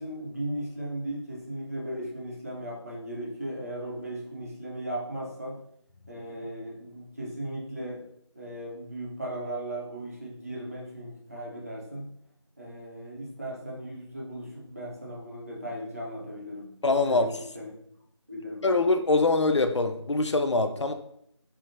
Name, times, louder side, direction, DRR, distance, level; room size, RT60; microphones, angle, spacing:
voice 1, 0.0-5.6 6.1-8.0 8.4-12.1 12.6-16.7 17.0-17.3 17.5-17.7 18.3-18.6, right 1 dB, 30° right, -3 dB, 0.7 m, -37 dB
voice 2, 16.8-17.4 18.6-20.9, left 3 dB, 70° left, 8 dB, 0.4 m, -24 dB
4.4 x 2.0 x 2.6 m, 0.71 s
figure-of-eight pair, 175°, 15 cm